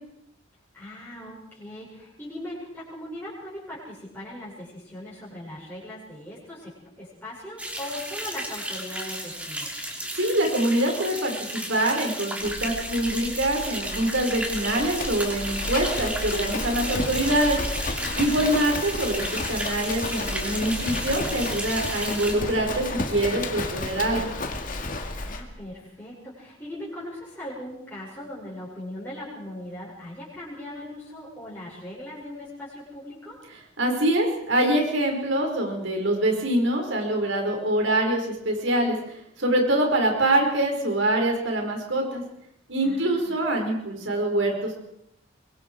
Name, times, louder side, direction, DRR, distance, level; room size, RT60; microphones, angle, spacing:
voice 1, 0.7-9.7 18.2-18.6 25.2-33.4 42.8-43.3, left 1 dB, 10° left, -8 dB, 6.7 m, -39 dB
sound 1, 7.6-22.3, right 1 dB, 5° right, 3.2 m, -33 dB
voice 2, 10.1-17.6 18.2-24.3 33.8-39.0 39.4-42.2 42.7-44.7, right 1 dB, 80° right, 2 dB, 5.2 m, -24 dB
Livestock farm animals working animals, 12.4-25.4, left 2 dB, 45° left, 2.2 m, -32 dB
24.5 x 22.5 x 4.8 m, 0.77 s
head